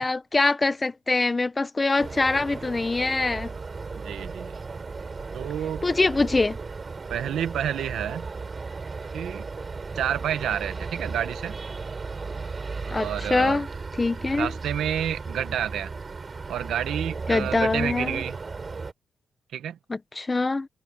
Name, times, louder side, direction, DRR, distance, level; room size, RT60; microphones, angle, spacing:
voice 1, 0.0-3.5 5.8-6.6 12.9-13.7 14.0-14.5 17.3-18.2 19.9-20.7, left 3 dB, 20° left, 0.9 m, -24 dB
sound 1, 2.0-18.9, right 4 dB, 30° right, 7.9 m, -35 dB
voice 2, 3.9-4.6 5.3-5.8 7.1-8.3 9.1-9.5 9.9-11.6 12.8-13.6 14.3-15.9 16.5-18.4 19.5-19.8, right 10 dB, 85° right, 1.4 m, -29 dB
cardioid pair, 140°, 0 cm